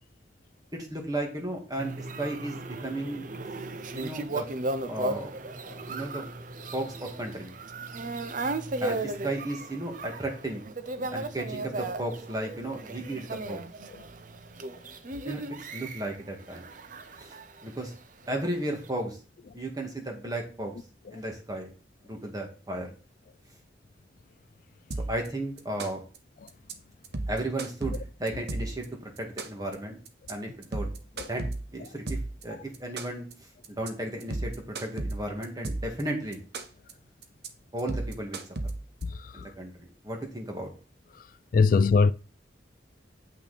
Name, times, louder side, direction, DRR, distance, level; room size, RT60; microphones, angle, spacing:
voice 1, 0.7-3.2 3.9-4.5 4.9-5.3 5.9-6.2 6.7-7.5 8.8-10.7 11.1-13.6 15.2-16.7 17.2-17.3 17.6-17.9 18.3-19.2 19.5-20.8 21.1-21.7 22.0-22.9 25.1-26.0 27.3-30.0 30.3-31.5 31.7-32.2 32.4-33.3 33.7-36.4 37.7-38.4 39.3-40.7, right 1 dB, 20° right, 2.0 m, -34 dB
sound 1, 1.8-17.9 18.4-18.9, right 2 dB, 45° right, 0.7 m, -36 dB
sound 2, 24.9-25.3 25.6-26.2 26.5-26.7 27.0-28.9 29.2-29.7 30.1-30.3 30.6-32.4 32.7-33.3 33.6-33.9 34.2-36.0 36.3-36.9 37.2-37.5 37.8-39.0, right 2 dB, 65° right, 1.0 m, -33 dB
voice 2, 39.0-39.5 41.1-42.1, left 4 dB, 50° left, 0.3 m, -25 dB
8.2 x 5.9 x 4.2 m
head